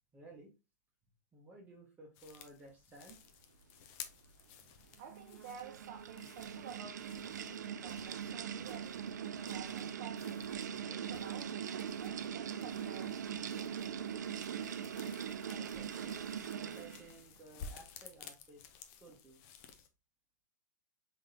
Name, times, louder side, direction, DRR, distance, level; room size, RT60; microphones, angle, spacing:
voice 1, 0.1-0.5 1.3-3.3 15.4-16.1 16.5-19.4, right 2 dB, 20° right, 1.0 m, -56 dB
sound 1, 2.1-19.9, left 6 dB, 45° left, 0.7 m, -55 dB
voice 2, 5.0-13.5, right 7 dB, 50° right, 0.8 m, -52 dB
sound 2, 5.0-17.1, right 8 dB, 75° right, 0.4 m, -41 dB
3.6 x 3.6 x 2.7 m
hypercardioid pair, 115°, 10 cm